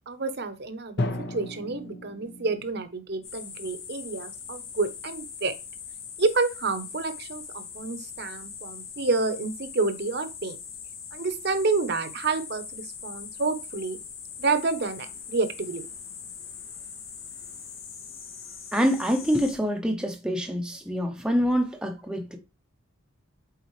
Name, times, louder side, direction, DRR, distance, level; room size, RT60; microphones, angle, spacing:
voice 1, 0.1-5.5 6.2-10.6 11.1-14.0 14.4-15.8, right 3 dB, 50° right, 0.8 m, -29 dB
Drum, 1.0-2.9, left 1 dB, 50° left, 0.7 m, -33 dB
sound 1, 3.2-19.6, left 7 dB, 70° left, 1.8 m, -41 dB
voice 2, 18.7-22.4, equal, 5° right, 0.7 m, -26 dB
8.3 x 4.0 x 3.2 m
head